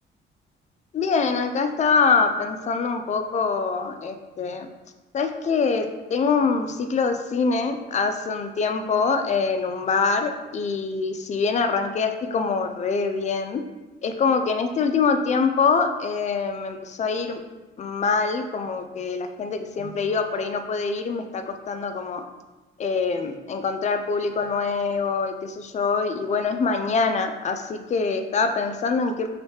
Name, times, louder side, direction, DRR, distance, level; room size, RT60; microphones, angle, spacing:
voice 1, 0.9-4.7 5.1-13.6 14.0-17.4 17.8-22.2 22.8-29.3, left 5 dB, 35° left, 7 dB, 0.3 m, -24 dB
3.1 x 2.9 x 3.2 m, 1.1 s
cardioid pair, 90°, 20 cm